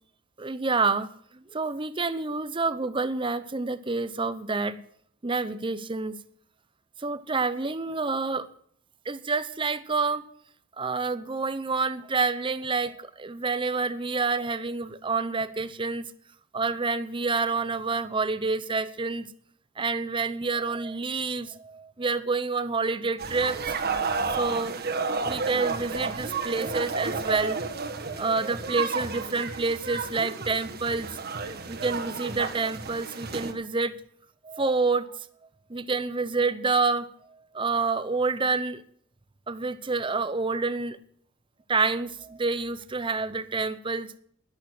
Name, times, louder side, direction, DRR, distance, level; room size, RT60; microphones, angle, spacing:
voice 1, 0.4-1.1 1.5-4.8 5.2-6.2 7.0-8.5 9.0-10.2 10.8-16.1 16.5-19.3 19.8-23.6 24.3-24.8 25.2-27.8 28.1-31.2 31.7-33.9 34.4-35.3 35.7-38.8 39.5-41.0 41.7-44.1, right 4 dB, 25° right, 13 dB, 0.7 m, -28 dB
sound 1, 23.2-33.5, right 4 dB, 50° right, 1.7 m, -31 dB
11.5 x 11.0 x 6.4 m, 0.63 s
head